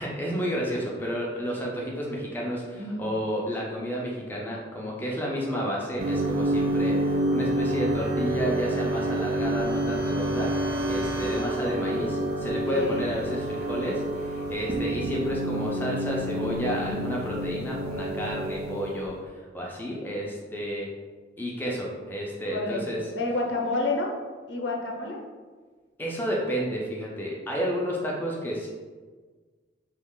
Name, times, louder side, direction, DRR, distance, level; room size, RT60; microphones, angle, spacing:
voice 1, 0.0-20.9 21.4-23.0 26.0-28.7, equal, 10° left, -3 dB, 0.4 m, -31 dB
voice 2, 2.7-3.1 12.7-13.1 16.6-17.0 22.5-24.1 24.5-25.2, left 2 dB, 75° left, 0 dB, 0.6 m, -30 dB
sound 1, 6.0-19.2, right 1 dB, 55° right, 0.4 m, -28 dB
3.0 x 2.4 x 3.6 m, 1.4 s
head